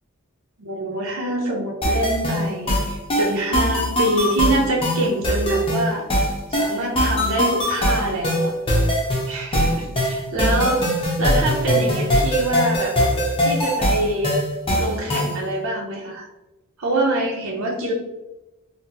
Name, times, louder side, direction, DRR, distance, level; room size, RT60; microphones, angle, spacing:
voice 1, 0.6-6.1 6.5-8.5 9.3-13.0 13.4-14.3 14.8-16.2 16.8-17.9, right 2 dB, 70° right, -2 dB, 0.6 m, -25 dB
sound 1, 1.8-15.4, equal, 25° left, 0.7 m, -21 dB
4.0 x 2.0 x 2.8 m, 0.99 s
head